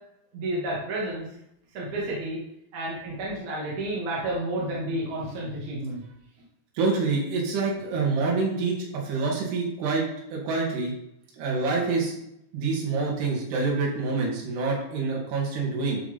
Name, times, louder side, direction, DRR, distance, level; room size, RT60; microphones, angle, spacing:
voice 1, 0.3-1.3 1.7-2.4 2.7-6.0, right 1 dB, 45° right, -5 dB, 3.4 m, -31 dB
voice 2, 6.8-10.0 10.3-10.9 11.4-12.1 12.5-16.0, right 4 dB, 70° right, -3 dB, 4.7 m, -26 dB
12.0 x 6.4 x 5.5 m, 0.79 s
omnidirectional pair, 5.0 m